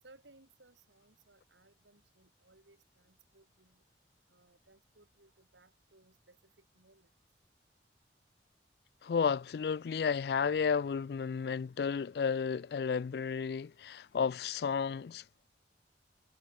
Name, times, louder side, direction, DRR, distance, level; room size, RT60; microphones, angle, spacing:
voice 1, 0.0-3.8 4.3-7.1, right 2 dB, 85° right, 3.9 m, -64 dB
voice 2, 9.0-15.2, left 6 dB, 60° left, 0.3 m, -32 dB
head